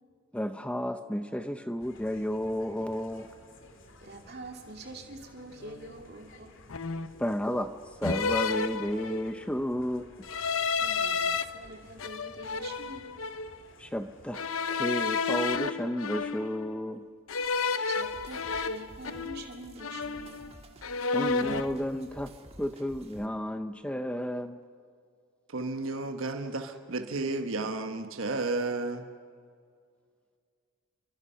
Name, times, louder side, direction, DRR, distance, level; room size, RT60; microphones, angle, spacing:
voice 1, 0.3-3.3 7.2-10.1 13.8-14.4 14.7-17.0 21.1-22.3 22.6-24.6, equal, 5° left, 8 dB, 0.6 m, -32 dB
sound 1, 1.8-14.5, left 2 dB, 65° left, 2.4 m, -55 dB
voice 2, 4.0-6.6 10.8-13.2 17.8-20.5, right 2 dB, 50° right, 2 dB, 2.7 m, -45 dB
sound 2, 5.6-5.8 6.7-7.2 8.0-9.4 10.2-11.4 12.0-13.5 14.3-16.7 17.3-19.5 19.8-20.5 20.8-21.7, left 4 dB, 80° left, 0.8 m, -31 dB
sound 3, 18.0-23.3, right 1 dB, 30° right, 1.6 m, -52 dB
voice 3, 25.5-29.1, right 3 dB, 75° right, 6 dB, 1.3 m, -32 dB
29.5 x 24.0 x 5.6 m, 2.1 s
head